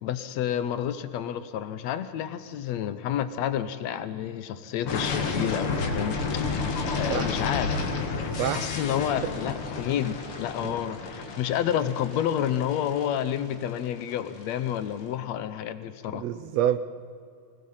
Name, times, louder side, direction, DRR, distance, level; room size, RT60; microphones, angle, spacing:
voice 1, 0.0-6.6 6.9-7.8 8.5-16.2, left 10 dB, 70° left, 12 dB, 1.9 m, -30 dB
sound 1, 4.9-14.7, left 4 dB, 50° left, 2.5 m, -31 dB
voice 2, 8.4-8.8 10.6-10.7 16.1-16.8, right 10 dB, 75° right, 12 dB, 1.6 m, -27 dB
24.5 x 19.5 x 5.6 m, 2.3 s
omnidirectional pair, 3.5 m